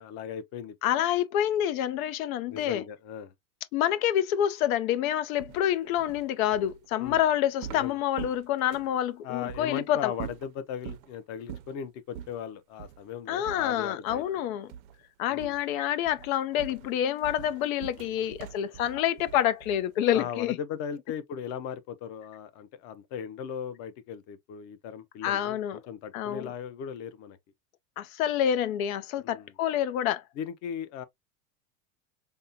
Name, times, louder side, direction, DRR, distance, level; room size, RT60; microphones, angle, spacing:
voice 1, 0.0-0.7 2.5-3.3 7.0-7.2 7.7-8.0 9.2-14.5 15.3-15.5 20.1-27.4 29.2-29.5 30.4-31.0, left 8 dB, 40° left, 0.7 m, -38 dB
voice 2, 0.8-2.8 3.7-10.1 13.3-14.7 15.2-20.6 25.2-25.8 26.1-26.5 28.0-30.2, left 11 dB, 85° left, 0.6 m, -27 dB
sound 1, 5.4-9.0 9.5-9.7 10.1-11.1 11.5-11.8 12.1-12.4 12.8-13.0 13.4-14.4 14.7-15.1 15.4-15.7 16.0-20.0, right 10 dB, 85° right, 0.6 m, -44 dB
5.3 x 2.1 x 2.7 m
supercardioid pair, 150°, 41 cm